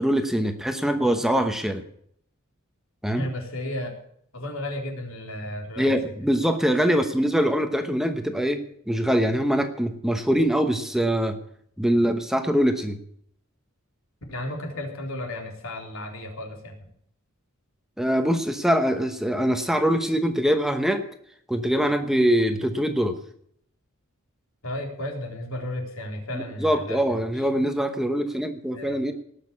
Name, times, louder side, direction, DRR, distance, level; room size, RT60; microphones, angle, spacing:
voice 1, 0.0-1.8 3.0-3.3 5.8-8.6 8.9-11.4 11.8-13.0 18.0-21.0 21.5-23.1 26.6-29.1, equal, ahead, 7 dB, 1.0 m, -23 dB
voice 2, 3.1-3.9 4.3-6.3 14.3-16.8 24.6-27.4 28.7-29.1, left 1 dB, 75° left, 1 dB, 4.0 m, -34 dB
18.5 x 6.6 x 8.5 m, 0.67 s
head